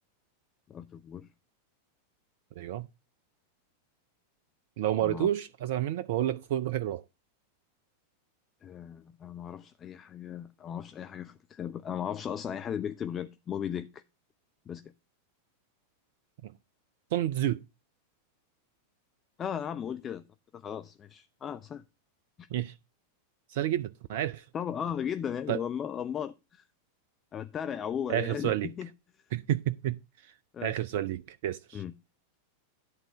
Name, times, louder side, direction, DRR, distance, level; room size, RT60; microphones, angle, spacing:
voice 1, 0.7-1.3 5.0-5.3 8.6-14.0 14.7-14.9 19.4-20.2 20.5-21.8 22.4-22.5 24.5-26.6 27.3-28.9 30.5-30.7 31.7-31.9, left 8 dB, 25° left, 0.5 m, -36 dB
voice 2, 2.6-2.9 4.8-7.0 16.4-16.5 17.1-17.6 22.5-22.7 23.5-24.5 25.5-25.6 28.1-28.7 29.3-30.3 30.6-31.8, right 12 dB, 50° right, 0.4 m, -30 dB
10.5 x 3.8 x 7.0 m
figure-of-eight pair, 90°, 0 cm